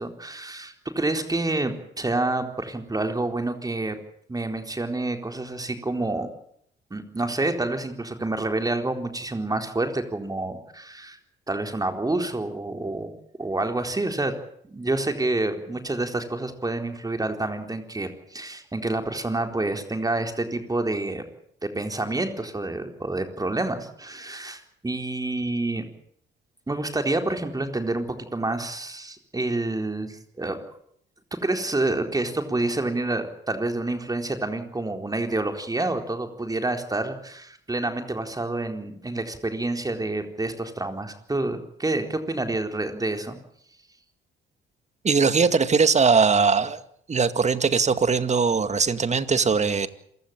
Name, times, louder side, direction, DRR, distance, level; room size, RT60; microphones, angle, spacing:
voice 1, 0.0-4.0 4.3-6.3 6.9-11.2 11.5-13.1 13.4-14.3 14.6-21.3 21.6-25.9 26.7-30.6 31.4-43.4, right 2 dB, 20° right, 6 dB, 4.2 m, -28 dB
voice 2, 45.0-46.8 47.1-49.9, right 5 dB, 35° right, 12 dB, 2.1 m, -20 dB
27.0 x 16.0 x 9.0 m, 0.69 s
cardioid pair, 90°, 20 cm